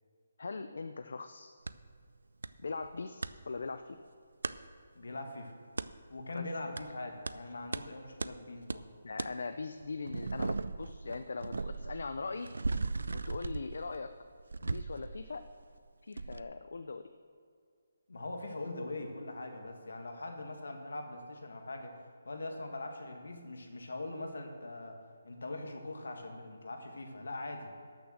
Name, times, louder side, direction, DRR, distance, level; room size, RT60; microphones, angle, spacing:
voice 1, 0.4-1.5 2.6-4.0 6.3-6.5 9.0-12.5 13.2-14.1 14.6-15.4 16.0-17.1, left 4 dB, 65° left, 10 dB, 0.5 m, -40 dB
sound 1, 1.7-1.8 2.4-2.5 2.8-3.3 4.4-4.6 5.8-5.9 6.8-6.9 7.3-7.4 7.7-7.8 8.2-8.3 8.7-8.8 9.2-9.3 9.8-15.8 16.2-16.4, right 3 dB, 90° right, 0.4 m, -37 dB
voice 2, 5.0-5.5 6.1-8.9 18.1-22.0 22.3-25.0 25.2-27.7, left 2 dB, 80° left, 4 dB, 1.8 m, -42 dB
12.5 x 6.7 x 6.3 m, 2.2 s
hypercardioid pair, 175°, 0 cm